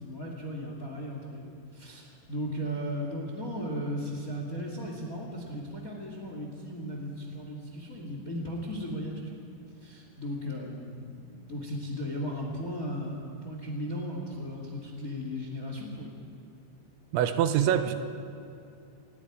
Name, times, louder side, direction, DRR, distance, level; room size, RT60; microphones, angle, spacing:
voice 1, 0.0-9.4 9.8-16.1, equal, 30° left, 1 dB, 1.5 m, -36 dB
voice 2, 17.1-18.0, right 10 dB, 85° right, 9 dB, 3.2 m, -24 dB
26.0 x 20.5 x 5.0 m, 2.6 s
omnidirectional pair, 5.4 m